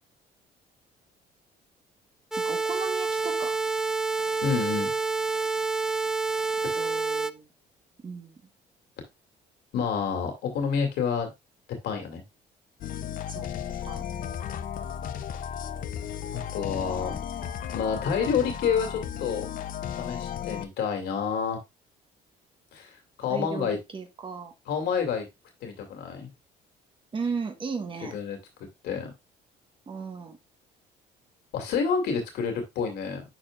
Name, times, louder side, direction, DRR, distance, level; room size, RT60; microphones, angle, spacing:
sound 1, 2.3-7.3, right 4 dB, 5° right, 0.4 m, -28 dB
voice 1, 2.4-3.6 6.7-7.5 8.0-8.4 13.3-13.5 13.8-14.0 23.3-24.5 27.1-28.2 29.9-30.4, right 5 dB, 30° right, 6 dB, 1.2 m, -36 dB
voice 2, 4.4-4.9 6.6-6.8 9.7-11.3 11.8-12.2 16.3-17.2 17.7-19.5 20.0-21.6 22.7-22.9 23.2-23.8 24.7-25.3 25.6-26.3 28.1-28.4 28.8-29.1 31.5-33.2, left 6 dB, 75° left, 4 dB, 2.5 m, -28 dB
sound 2, 12.8-20.7, left 9 dB, 55° left, 0.7 m, -34 dB
10.5 x 4.4 x 2.4 m, 0.21 s
cardioid pair, 110°, 17 cm